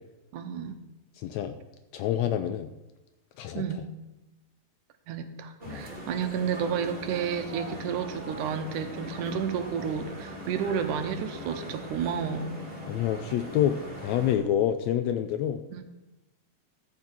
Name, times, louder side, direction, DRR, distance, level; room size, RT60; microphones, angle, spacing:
voice 1, 0.3-0.7 3.5-3.9 5.1-12.7 15.7-15.8, right 7 dB, 90° right, 8 dB, 2.3 m, -31 dB
voice 2, 1.2-1.6 1.9-2.7 3.4-3.6 5.7-5.8 12.9-15.8, left 10 dB, 80° left, 9 dB, 1.6 m, -27 dB
sound 1, 5.6-14.4, equal, 20° right, 1.9 m, -41 dB
13.5 x 4.7 x 7.4 m, 1.0 s
omnidirectional pair, 3.5 m